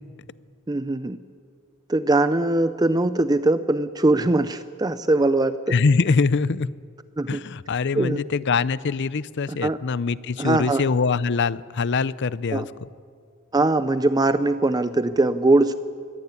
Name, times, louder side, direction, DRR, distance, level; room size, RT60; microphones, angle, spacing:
voice 1, 0.7-1.2 1.9-5.7 7.2-7.4 7.9-8.2 9.6-9.8 10.4-10.8 12.5-12.7 13.5-15.7, right 2 dB, 15° right, 12 dB, 0.5 m, -21 dB
voice 2, 5.7-6.7 7.3-12.9, left 4 dB, 50° left, 18 dB, 0.5 m, -23 dB
22.0 x 16.5 x 9.6 m, 2.1 s
head